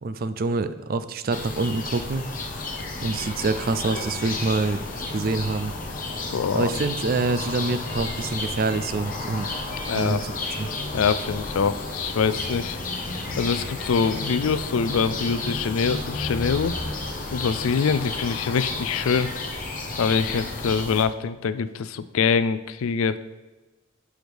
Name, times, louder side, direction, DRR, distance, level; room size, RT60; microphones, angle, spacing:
voice 1, 0.0-2.3 3.0-4.8 5.1-5.7 6.5-9.5 9.9-10.3 10.6-10.7, right 3 dB, 45° right, 12 dB, 0.4 m, -26 dB
sound 1, 1.3-21.1, left 2 dB, 40° left, 0.9 m, -32 dB
voice 2, 6.3-6.7 9.9-10.2 10.9-12.8 13.4-16.7 17.3-19.3 20.0-23.2, left 6 dB, 80° left, 13 dB, 0.4 m, -24 dB
10.0 x 4.9 x 3.5 m, 1.1 s
head